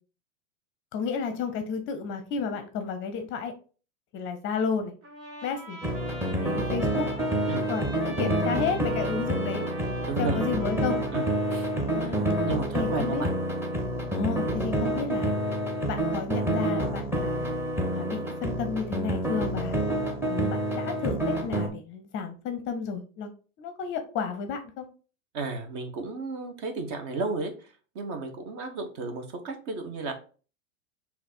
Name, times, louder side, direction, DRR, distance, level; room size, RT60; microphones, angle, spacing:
voice 1, 0.9-3.5 4.1-4.9 5.4-5.8 6.4-7.1 7.7-9.6 10.2-11.0 11.7-12.4 12.7-13.3 14.1-15.3 15.9-17.4 17.9-19.8 20.3-23.3 23.6-24.8, left 5 dB, 30° left, 8 dB, 0.6 m, -32 dB
Trumpet, 5.0-12.2, right 2 dB, 75° right, 1.9 m, -43 dB
sound 1, 5.8-21.7, right 1 dB, 5° right, 0.8 m, -28 dB
voice 2, 10.1-10.4 11.1-13.3 25.3-30.1, right 3 dB, 45° right, 6 dB, 1.2 m, -34 dB
4.2 x 2.8 x 4.2 m, 0.37 s
figure-of-eight pair, 95°, 41 cm